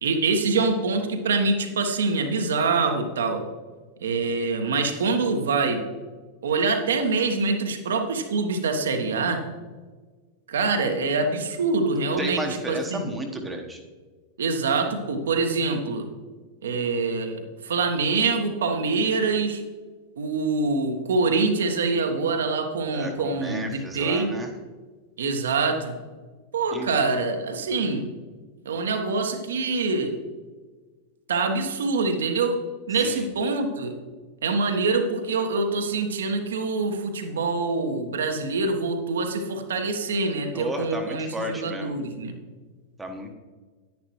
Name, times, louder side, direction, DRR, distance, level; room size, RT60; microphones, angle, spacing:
voice 1, 0.0-3.4 4.0-5.8 6.4-9.4 10.5-12.4 12.7-13.1 14.4-16.1 16.6-19.6 20.2-24.3 25.2-26.0 26.5-28.1 28.6-30.2 31.3-32.6 32.9-34.0 34.4-42.4, right 3 dB, 65° right, 5 dB, 1.2 m, -25 dB
voice 2, 12.2-13.8 22.9-24.5 26.7-26.9 33.0-33.3 40.5-42.0 43.0-43.3, right 1 dB, 10° right, 3 dB, 1.3 m, -33 dB
10.5 x 10.5 x 3.1 m, 1.4 s
figure-of-eight pair, 90°, 0 cm